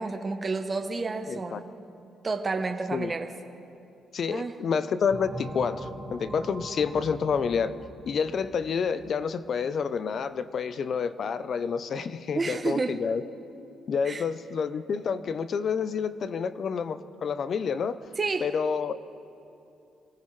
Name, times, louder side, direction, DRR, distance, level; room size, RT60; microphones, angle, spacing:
voice 1, 0.0-1.7 2.2-3.3 4.3-4.5 12.3-13.0 14.0-14.2 18.2-18.5, right 3 dB, 30° right, 5 dB, 0.9 m, -30 dB
voice 2, 1.3-1.6 2.9-3.1 4.1-7.7 8.1-13.2 13.9-18.0 18.4-18.9, left 6 dB, 55° left, 13 dB, 0.6 m, -29 dB
sound 1, 5.1-9.5, right 1 dB, ahead, 2.0 m, -41 dB
25.0 x 16.5 x 3.3 m, 2.7 s
cardioid pair, 90°, 0 cm